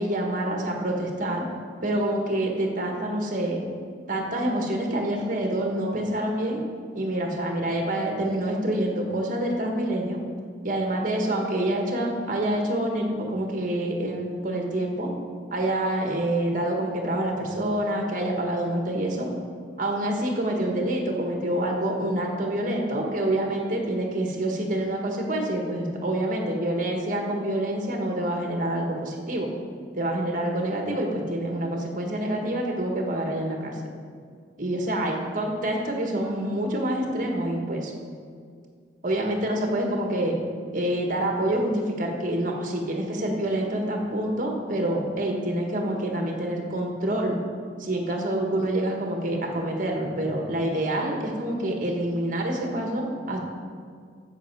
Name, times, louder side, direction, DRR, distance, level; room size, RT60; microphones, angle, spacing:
voice 1, 0.0-1.4 1.8-3.6 4.1-6.6 6.9-10.2 10.6-15.1 15.5-19.3 19.8-29.5 29.9-33.7 34.6-37.9 39.0-40.3 40.7-47.4 47.8-53.4, right 1 dB, 45° right, 1 dB, 1.4 m, -27 dB
11.0 x 7.8 x 4.6 m, 2.1 s
head